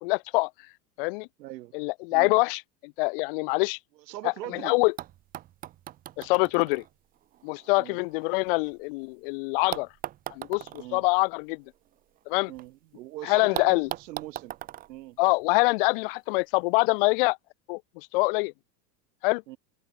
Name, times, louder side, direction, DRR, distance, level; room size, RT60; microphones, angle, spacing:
voice 1, 0.0-0.5 1.0-1.3 1.7-3.8 4.2-4.9 6.2-6.8 7.4-9.9 10.3-11.6 12.3-12.5 13.2-13.9 15.2-17.4 17.7-18.5 19.2-19.4, left 27 dB, 35° left, 0.6 m, -25 dB
voice 2, 1.4-1.7 2.1-2.3 4.0-4.8 7.8-8.0 10.8-11.0 12.5-14.5 14.9-15.2 19.5-19.6, right 16 dB, 80° right, 2.9 m, -41 dB
sound 1, 4.5-4.6 5.0-9.1 9.7-12.7 12.9-13.0 13.5-15.9 16.9-17.0, right 13 dB, 20° right, 0.7 m, -41 dB
supercardioid pair, 170°, 49 cm